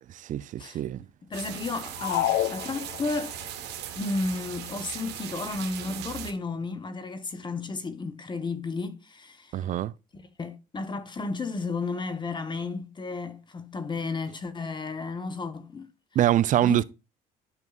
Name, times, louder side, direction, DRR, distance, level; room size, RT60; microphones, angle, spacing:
voice 1, 0.3-1.0 9.5-9.9 16.2-16.8, right 12 dB, 50° right, 0.4 m, -24 dB
voice 2, 1.2-3.3 3.9-9.6 10.1-15.9 16.6-16.8, left 3 dB, 25° left, 0.9 m, -33 dB
sound 1, 1.3-6.3, right 11 dB, 80° right, 1.2 m, -39 dB
sound 2, 2.0-3.4, left 13 dB, 90° left, 0.6 m, -28 dB
12.5 x 5.3 x 2.3 m
cardioid pair, 110°, 17 cm